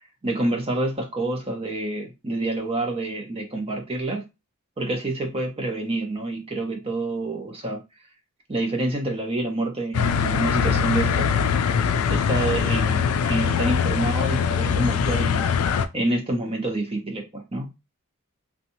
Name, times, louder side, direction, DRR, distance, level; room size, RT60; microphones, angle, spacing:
voice 1, 0.2-4.2 4.8-7.8 8.5-11.3 12.1-15.5 15.9-17.7, right 2 dB, 25° right, 0.7 m, -27 dB
sound 1, 9.9-15.9, left 6 dB, 80° left, 0.3 m, -22 dB
2.8 x 2.3 x 2.6 m
head